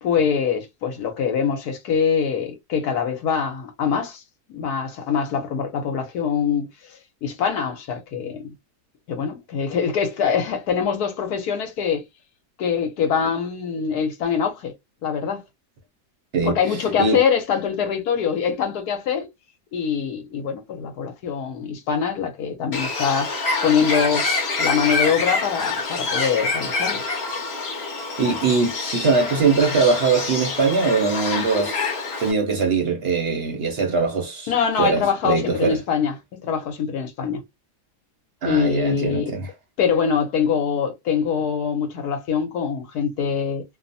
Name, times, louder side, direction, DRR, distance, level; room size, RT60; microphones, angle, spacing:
voice 1, 0.0-4.2 4.5-8.5 9.1-12.0 12.6-14.7 15.0-15.4 16.4-19.3 19.7-24.3 24.6-27.0 34.5-36.1 36.4-37.4 38.4-39.3 39.8-43.6, left 7 dB, 70° left, 1.2 m, -24 dB
Bird, 22.7-32.3, left 3 dB, 50° left, 1.0 m, -26 dB
voice 2, 28.2-31.7 32.2-34.5 34.8-35.8 38.4-39.5, right 4 dB, 55° right, 0.7 m, -21 dB
2.9 x 2.0 x 2.5 m
omnidirectional pair, 1.8 m